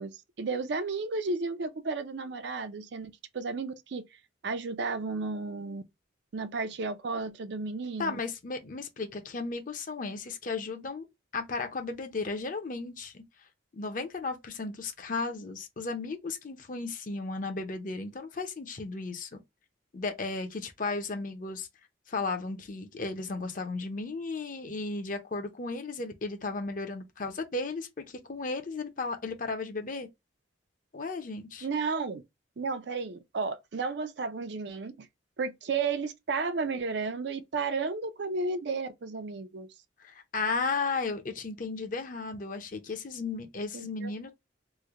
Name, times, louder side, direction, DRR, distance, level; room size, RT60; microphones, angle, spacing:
voice 1, 0.0-4.1 4.4-5.8 6.3-8.2 31.6-32.2 32.6-35.1 35.4-39.7 43.7-44.3, right 4 dB, 60° right, 0.4 m, -33 dB
voice 2, 8.0-11.1 11.3-13.2 13.7-19.4 19.9-21.7 22.1-30.1 30.9-31.7 40.0-44.3, left 3 dB, 45° left, 0.6 m, -35 dB
3.1 x 2.1 x 3.6 m
head